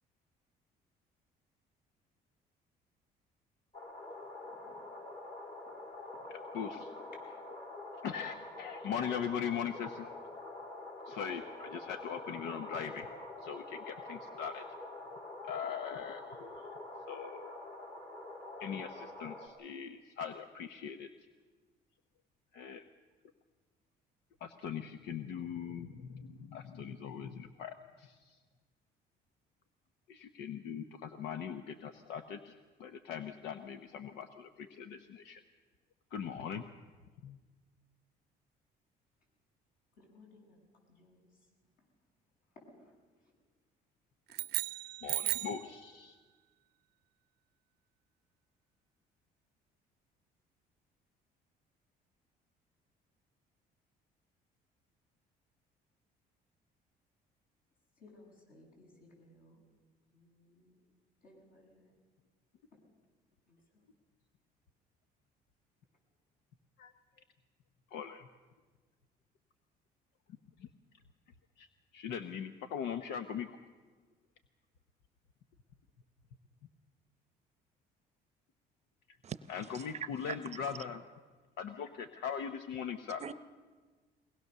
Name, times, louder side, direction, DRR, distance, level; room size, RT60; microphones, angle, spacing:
sound 1, 3.7-19.5, left 2 dB, 40° left, 3.3 m, -46 dB
voice 1, 6.3-6.8 8.0-10.1 11.1-13.1 13.4-14.6 15.4-16.7 17.1-17.5 18.6-21.1 22.5-22.8 24.4-28.4 30.1-32.5 32.8-35.4 36.1-36.6 37.2-37.4 45.0-46.1 66.8-66.9 67.9-68.3 70.6-70.7 71.6-71.7 71.9-73.5 79.5-81.0 81.6-83.2, left 7 dB, 85° left, 1.0 m, -40 dB
voice 2, 39.9-40.6 40.9-41.5 41.8-41.9 42.5-43.3 44.3-44.4 58.0-59.6 60.1-60.8 61.2-61.9 63.5-63.8, left 2 dB, 60° left, 7.9 m, -61 dB
sound 2, 44.3-45.7, right 16 dB, 75° right, 0.6 m, -35 dB
voice 3, 79.2-80.6 83.2-83.3, right 8 dB, 40° right, 0.7 m, -43 dB
22.5 x 19.5 x 6.8 m
cardioid pair, 110°, 17 cm